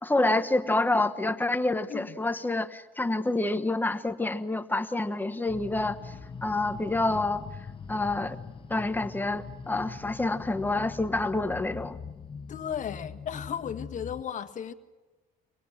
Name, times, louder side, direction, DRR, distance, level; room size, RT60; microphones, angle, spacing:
voice 1, 0.0-6.1 6.4-7.4 7.9-8.4 8.7-12.0, left 2 dB, 10° left, 1.2 m, -28 dB
sound 1, 5.5-14.2, left 5 dB, 30° left, 1.1 m, -42 dB
voice 2, 12.5-14.7, left 8 dB, 45° left, 1.6 m, -35 dB
25.0 x 18.5 x 7.3 m
cardioid pair, 110°, 17 cm